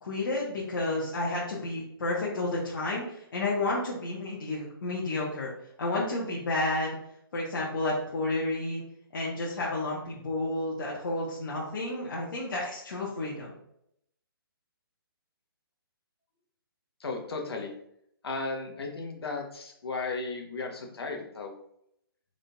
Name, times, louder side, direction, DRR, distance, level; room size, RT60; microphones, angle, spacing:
voice 1, 0.0-5.5 5.8-7.0 7.3-8.8 9.1-13.6, left 2 dB, 60° left, -5 dB, 1.0 m, -31 dB
voice 2, 17.0-17.7 18.2-21.5, left 3 dB, 85° left, 3 dB, 0.9 m, -35 dB
3.9 x 3.7 x 2.3 m, 0.74 s
hypercardioid pair, 170°, 13 cm